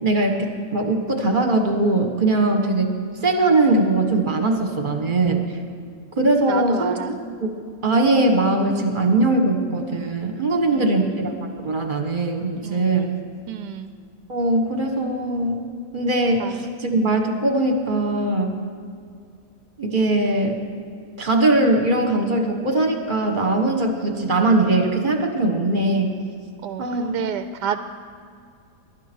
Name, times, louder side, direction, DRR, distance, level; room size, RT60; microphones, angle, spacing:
voice 1, 0.0-3.0 3.2-5.5 6.2-7.2 7.8-13.1 14.3-15.7 15.9-18.6 19.8-20.6 21.2-26.2 26.8-27.2, right 2 dB, 30° right, 4 dB, 1.5 m, -21 dB
voice 2, 6.5-7.2 10.7-11.3 12.6-13.1 13.5-13.9 16.4-16.7 26.6-27.8, right 9 dB, 80° right, 10 dB, 1.2 m, -31 dB
22.5 x 12.0 x 4.6 m, 2.3 s
omnidirectional pair, 1.8 m